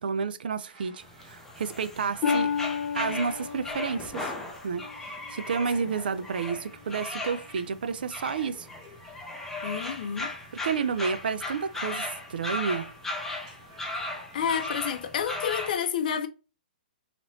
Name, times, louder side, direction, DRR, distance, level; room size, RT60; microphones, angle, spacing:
voice 1, 0.0-2.5 2.9-4.3 4.6-4.8 5.3-8.7 10.5-12.9, right 5 dB, 75° right, 0.4 m, -30 dB
sound 1, 0.6-15.3, right 1 dB, 45° right, 1.4 m, -54 dB
sound 2, 1.0-15.7, left 2 dB, 5° left, 0.6 m, -37 dB
Harp, 2.2-6.0 6.5-6.9 7.5-7.7, left 6 dB, 30° left, 1.0 m, -32 dB
voice 2, 9.6-10.3 14.3-16.3, left 8 dB, 60° left, 0.5 m, -29 dB
2.9 x 2.9 x 2.6 m
hypercardioid pair, 135°, 5 cm